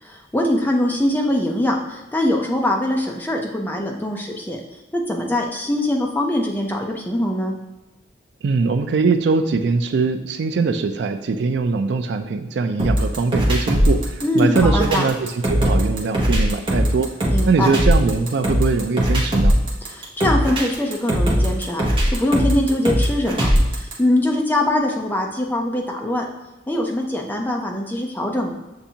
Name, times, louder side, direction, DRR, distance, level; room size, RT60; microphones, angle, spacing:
voice 1, 0.0-4.6 4.9-7.5 14.2-15.1 17.3-17.7 19.9-21.9 22.1-26.3 26.7-28.5, left 1 dB, 10° left, 1 dB, 0.5 m, -22 dB
voice 2, 8.4-17.1 17.5-19.5, right 4 dB, 65° right, 9 dB, 0.3 m, -21 dB
sound 1, 12.8-23.9, equal, 25° right, 0.8 m, -19 dB
6.9 x 2.6 x 2.7 m, 1.1 s
head